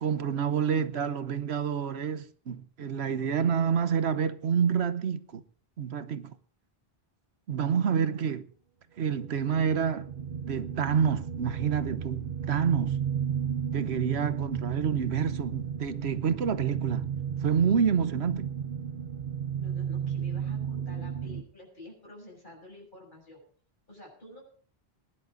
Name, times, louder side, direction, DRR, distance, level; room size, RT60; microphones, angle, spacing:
voice 1, 0.0-5.4 5.8-6.4 7.5-8.5 9.0-10.1 10.5-13.0 13.7-17.1 17.4-18.5, right 7 dB, 80° right, 1.2 m, -28 dB
sound 1, 9.2-21.4, right 8 dB, 55° right, 1.1 m, -34 dB
voice 2, 19.5-23.4 23.9-24.4, left 2 dB, 50° left, 6.9 m, -49 dB
21.5 x 11.0 x 3.9 m
omnidirectional pair, 1.1 m